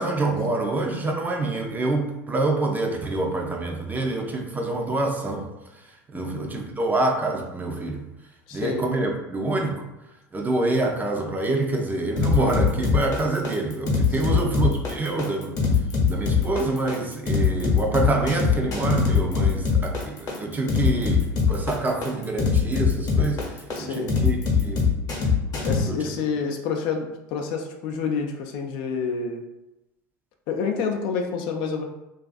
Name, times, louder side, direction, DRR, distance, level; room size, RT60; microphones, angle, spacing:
voice 1, 0.0-8.0 8.5-9.8 10.3-15.6 16.0-24.9 25.9-26.1, right 2 dB, 20° right, 2 dB, 0.4 m, -26 dB
voice 2, 6.1-6.5 8.5-8.8 14.3-14.4 23.7-24.1 25.7-29.4 30.5-31.8, left 5 dB, 60° left, 3 dB, 0.4 m, -28 dB
sound 1, 12.2-25.8, left 6 dB, 40° left, 0.8 m, -22 dB
2.4 x 2.4 x 2.3 m, 0.95 s
hypercardioid pair, 85°, 9 cm